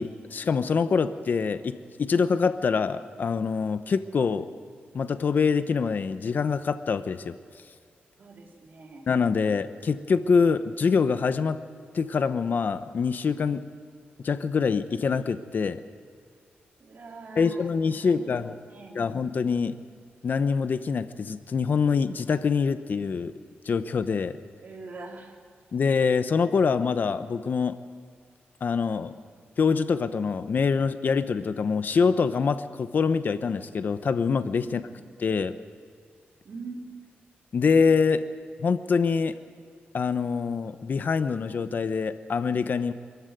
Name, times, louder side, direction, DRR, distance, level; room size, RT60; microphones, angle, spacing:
voice 1, 0.0-4.5 4.9-7.3 9.1-11.6 11.9-13.6 14.2-15.8 17.4-18.6 18.9-19.8 20.2-23.3 23.6-24.3 25.7-27.8 28.6-29.1 29.6-34.8 35.2-35.6 37.5-38.2 38.6-39.3 39.9-42.9, left 5 dB, 55° left, 11 dB, 0.9 m, -25 dB
voice 2, 8.2-9.0 16.8-19.1 24.6-25.4 29.0-29.4 34.6-35.1 36.4-37.0, right 3 dB, 55° right, 0 dB, 3.9 m, -44 dB
23.5 x 14.5 x 9.3 m, 2.2 s
wide cardioid pair, 110°, 4 cm